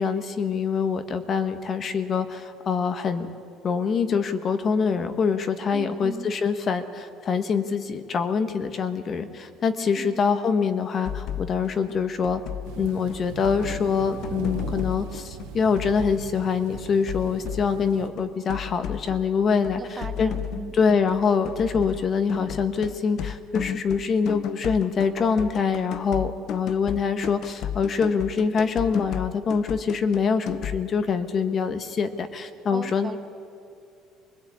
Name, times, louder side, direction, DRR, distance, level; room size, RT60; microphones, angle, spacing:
voice 1, 0.0-3.3 3.6-12.4 12.8-20.3 20.7-33.1, left 5 dB, 35° left, 9 dB, 1.4 m, -25 dB
voice 2, 5.7-6.3 10.0-10.2 19.8-20.7 32.7-33.2, right 4 dB, 20° right, 9 dB, 0.9 m, -37 dB
sound 1, 11.0-30.9, left 9 dB, 55° left, 0.7 m, -34 dB
sound 2, 12.7-18.1, right 13 dB, 85° right, 0.8 m, -39 dB
21.0 x 21.0 x 8.7 m, 2.6 s
cardioid pair, 135°, 0 cm